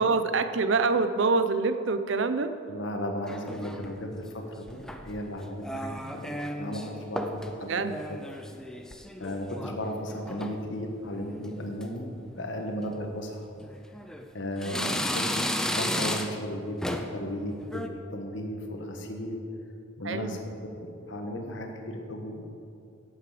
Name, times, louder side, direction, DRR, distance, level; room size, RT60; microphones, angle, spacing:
voice 1, 0.0-2.5 5.9-6.1 7.6-8.0 14.7-15.1 20.0-20.4, right 4 dB, 65° right, 10 dB, 0.6 m, -26 dB
voice 2, 2.7-7.8 8.1-8.2 9.2-13.5 14.3-15.4 15.7-19.4 20.0-22.5, equal, 65° left, 3 dB, 1.4 m, -35 dB
sound 1, 3.3-4.0 4.7-5.2 5.6-6.9 7.2-7.5 7.8-9.8 10.1-10.6 11.1-11.5 11.8-11.9 12.8-13.0 13.6-14.3 14.6-16.5 16.8-17.2 17.6-17.9, left 1 dB, 5° left, 0.5 m, -33 dB
12.0 x 8.2 x 5.0 m, 2.6 s
head